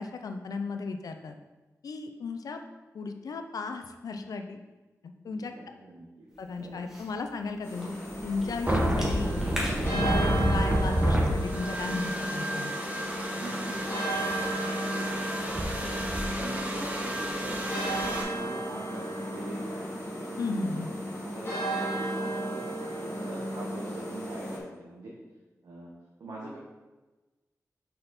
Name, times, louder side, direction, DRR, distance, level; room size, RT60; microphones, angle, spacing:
voice 1, 0.0-1.4 1.8-2.6 2.9-4.6 5.0-5.5 6.4-7.9 8.2-9.4 9.9-12.7 20.4-20.9, left 4 dB, 85° left, 6 dB, 0.5 m, -35 dB
voice 2, 5.3-6.3 6.6-6.9 13.3-15.5 15.9-19.9 20.2-20.8 21.2-22.6 23.0-25.1 25.6-25.9 26.2-26.6, right 1 dB, 75° right, -4 dB, 1.0 m, -43 dB
Cough / Chewing mastication, 6.3-12.3, equal, 5° right, 1.5 m, -42 dB
sound 1, 7.6-24.6, right 1 dB, 40° left, 2.0 m, -34 dB
sound 2, 8.7-18.2, equal, 25° right, 1.1 m, -30 dB
5.4 x 4.3 x 4.0 m, 1.2 s
cardioid pair, 60°, 6 cm